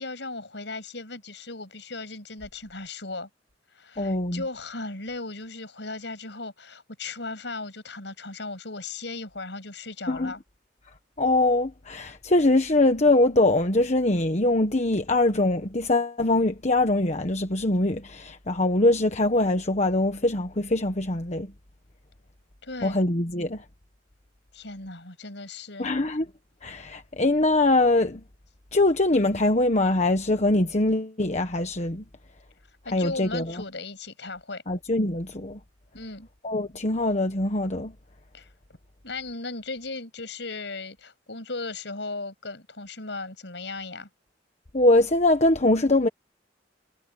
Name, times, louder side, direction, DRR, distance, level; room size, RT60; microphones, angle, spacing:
voice 1, 0.0-3.3 3.7-10.4 22.6-23.1 24.5-25.9 32.8-34.6 35.9-36.3 38.3-38.5 39.0-44.1, left 3 dB, 70° left, 7.3 m, -37 dB
voice 2, 4.0-4.4 10.1-10.3 11.2-21.5 22.8-23.6 25.8-26.3 26.6-28.2 28.7-32.0 32.9-33.6 34.7-35.6 36.4-37.9 44.7-46.1, left 2 dB, 40° left, 1.3 m, -23 dB
head